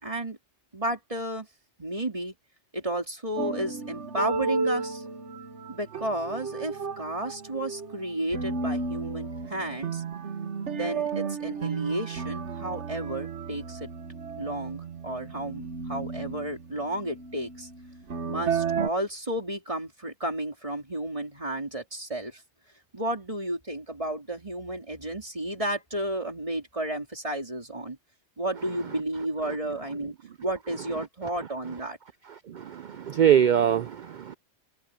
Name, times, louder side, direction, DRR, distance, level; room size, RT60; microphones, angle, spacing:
voice 1, 0.0-0.4 0.7-1.5 1.8-2.3 2.7-5.0 5.7-10.0 10.7-13.9 14.4-17.7 18.3-22.4 22.9-28.0 28.4-30.1 30.4-32.0, right 1 dB, 30° right, 3.7 m, -32 dB
sound 1, 3.4-18.9, right 4 dB, 80° right, 1.6 m, -33 dB
voice 2, 32.5-34.4, right 9 dB, 55° right, 0.5 m, -23 dB
open air
omnidirectional pair, 1.2 m